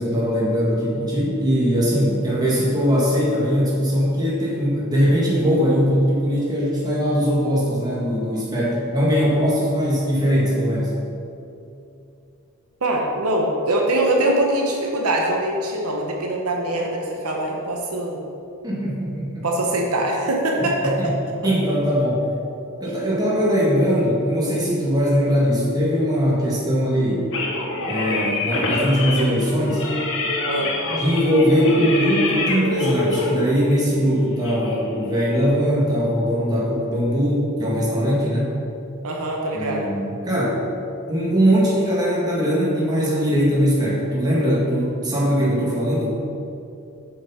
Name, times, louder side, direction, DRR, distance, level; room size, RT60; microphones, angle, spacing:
voice 1, 0.0-10.9 18.6-19.5 20.6-21.2 21.4-22.3 22.8-27.3 27.8-29.9 30.8-38.6 39.5-40.6 41.1-46.1, equal, 20° right, -6 dB, 1.9 m, -20 dB
voice 2, 12.8-18.2 19.4-20.9 30.5-30.7 39.0-39.9, right 1 dB, 75° right, 0 dB, 0.9 m, -23 dB
sound 1, 27.3-35.5, left 2 dB, 60° left, 1.2 m, -26 dB
7.4 x 5.3 x 5.6 m, 2.7 s
head